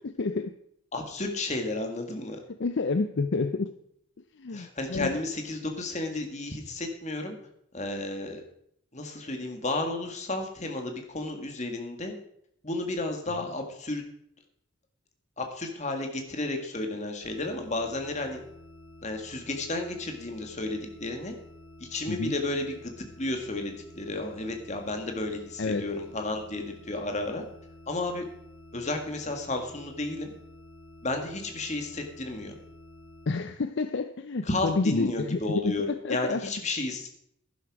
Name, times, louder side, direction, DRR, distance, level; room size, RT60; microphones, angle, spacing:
voice 1, 0.2-0.5 2.6-3.7 4.4-5.1 22.1-22.3 25.6-25.9 33.3-35.7 36.0-36.4, left 3 dB, 55° left, 10 dB, 0.5 m, -29 dB
voice 2, 0.9-2.4 4.5-7.4 7.7-8.4 8.9-12.1 12.6-14.0 15.4-18.4 19.0-21.3 21.8-27.4 27.9-28.3 28.7-30.3 31.0-32.6 34.4-37.1, left 2 dB, 35° left, 4 dB, 1.8 m, -32 dB
sound 1, 17.2-33.3, left 1 dB, 85° left, 1.8 m, -50 dB
11.5 x 11.0 x 4.8 m, 0.72 s
head